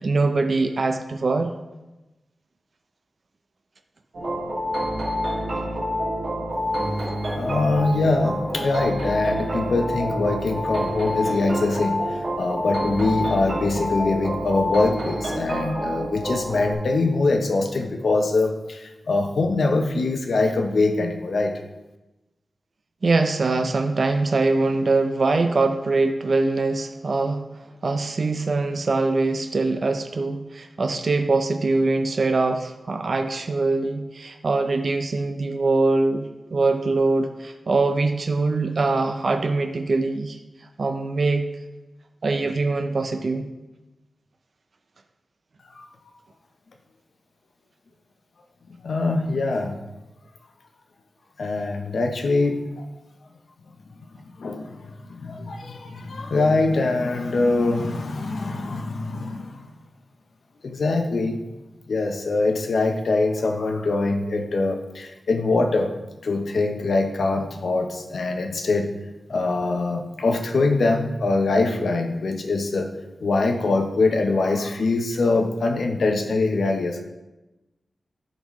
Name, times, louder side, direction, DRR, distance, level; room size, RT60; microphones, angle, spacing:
voice 1, 0.0-1.5 23.0-27.4 27.8-40.4 40.8-41.4 42.2-43.5, right 3 dB, 55° right, 6 dB, 0.5 m, -23 dB
sound 1, 4.1-16.7, equal, 75° right, 1.7 m, -27 dB
voice 2, 7.3-21.6 45.7-45.8 48.8-49.8 51.4-52.6 54.4-59.7 60.6-61.4 61.9-65.9 66.2-68.9 69.3-72.9 73.2-77.0, left 3 dB, 75° left, 4 dB, 0.8 m, -23 dB
11.5 x 4.0 x 3.1 m, 1.0 s
wide cardioid pair, 80°, 0 cm